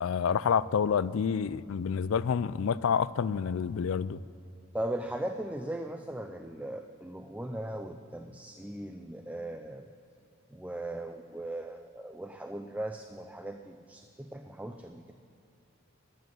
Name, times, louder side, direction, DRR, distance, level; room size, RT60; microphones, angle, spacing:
voice 1, 0.0-4.2, left 6 dB, 70° left, 18 dB, 0.4 m, -28 dB
voice 2, 4.7-9.9 10.5-15.1, right 1 dB, 5° right, 6 dB, 0.4 m, -38 dB
12.5 x 9.4 x 9.3 m, 2.6 s
head